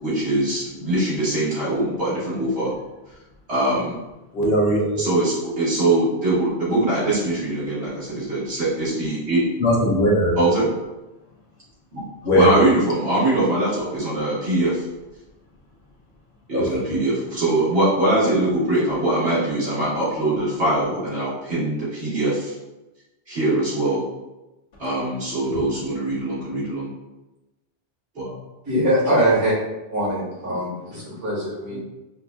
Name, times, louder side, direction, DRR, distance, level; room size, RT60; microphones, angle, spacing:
voice 1, 0.0-2.7 3.5-4.0 5.0-9.4 10.4-10.7 11.9-12.0 12.3-14.9 16.5-22.5 23.3-24.0 24.8-26.9 28.2-28.3 31.7-31.8, right 1 dB, 85° right, -9 dB, 1.9 m, -22 dB
voice 2, 4.3-5.0 9.6-10.4 12.2-12.5 16.5-16.8 25.5-25.6, equal, 75° left, -2 dB, 1.0 m, -19 dB
voice 3, 28.7-29.5 29.9-31.8, right 1 dB, 65° right, -6 dB, 1.9 m, -22 dB
5.2 x 2.5 x 2.3 m, 1.0 s
omnidirectional pair, 1.1 m